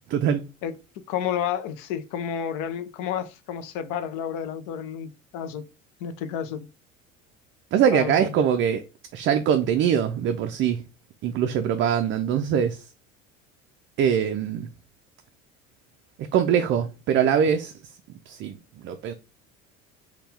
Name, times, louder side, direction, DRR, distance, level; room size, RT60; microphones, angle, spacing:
voice 1, 0.1-0.4 7.7-8.8 9.1-10.8 11.2-12.9 14.0-14.7 16.2-17.7 18.3-19.1, right 8 dB, 30° right, 0.4 m, -23 dB
voice 2, 0.6-5.6 6.0-6.7 7.9-8.5, left 8 dB, 50° left, 0.7 m, -31 dB
4.1 x 2.3 x 3.4 m
figure-of-eight pair, 65°, 39 cm